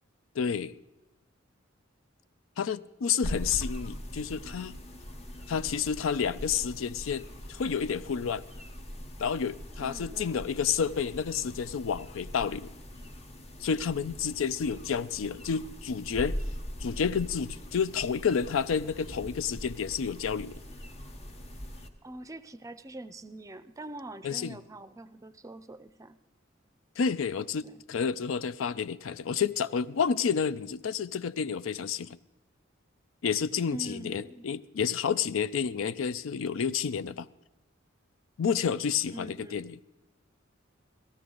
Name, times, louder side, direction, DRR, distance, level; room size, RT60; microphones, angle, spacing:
voice 1, 0.4-0.8 2.6-4.8 5.5-8.4 9.2-12.7 13.6-16.4 16.8-20.6 24.2-24.6 27.0-32.2 33.2-37.3 38.4-39.8, left 6 dB, 90° left, 0.4 m, -30 dB
sound 1, 3.2-21.9, equal, 30° left, 1.2 m, -41 dB
voice 2, 9.8-10.4 22.0-26.2 27.6-27.8 33.7-34.5 39.1-39.7, right 1 dB, 15° right, 0.4 m, -44 dB
17.5 x 14.5 x 3.8 m
head